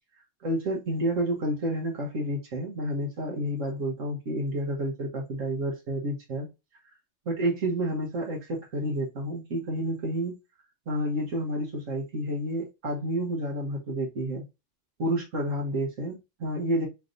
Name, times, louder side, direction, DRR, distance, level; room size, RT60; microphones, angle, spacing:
voice 1, 0.4-6.5 7.2-10.3 10.9-14.4 15.0-16.9, right 1 dB, 85° right, 1.6 m, -30 dB
4.7 x 3.3 x 2.6 m
omnidirectional pair, 1.3 m